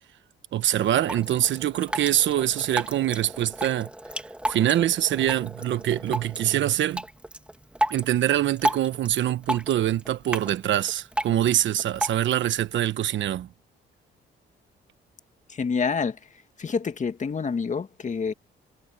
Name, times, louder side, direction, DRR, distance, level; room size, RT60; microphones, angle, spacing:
voice 1, 0.5-3.9 4.5-7.0 7.9-13.5, right 12 dB, 70° right, 1.2 m, -24 dB
Drip, 0.8-12.8, right 1 dB, 5° right, 2.3 m, -33 dB
voice 2, 15.5-16.2 16.6-18.3, left 5 dB, 40° left, 2.0 m, -27 dB
cardioid pair, 90°, 20 cm